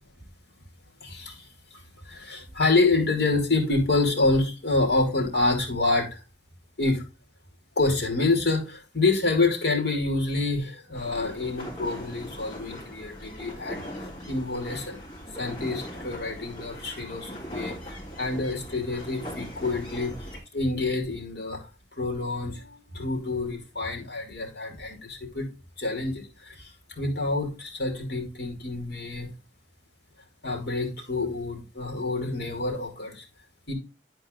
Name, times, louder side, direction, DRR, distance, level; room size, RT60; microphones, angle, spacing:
voice 1, 1.0-1.4 1.7-6.2 6.8-7.0 7.8-13.9 14.3-15.0 15.4-21.7 22.0-25.5 25.8-29.3 30.4-33.2 33.7-33.8, left 3 dB, 65° left, 1 dB, 2.8 m, -27 dB
sound 1, 10.9-20.4, equal, 35° left, 3.5 m, -40 dB
10.5 x 4.5 x 3.8 m, 0.29 s
head